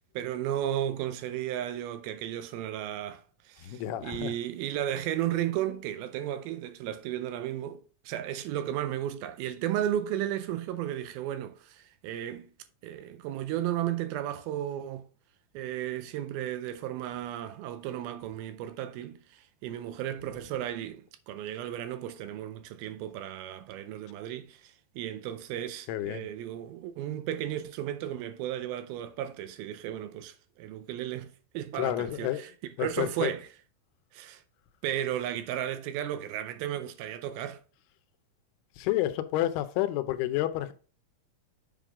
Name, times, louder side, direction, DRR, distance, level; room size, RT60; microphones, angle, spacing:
voice 1, 0.2-12.5 12.8-15.1 15.5-32.5 32.8-33.5 34.1-34.4 34.8-37.6, right 11 dB, 80° right, 2.3 m, -34 dB
voice 2, 3.6-4.3 25.9-26.3 31.8-32.4 32.8-33.3 38.8-40.7, left 14 dB, 85° left, 2.6 m, -30 dB
7.4 x 3.7 x 4.8 m
omnidirectional pair, 4.5 m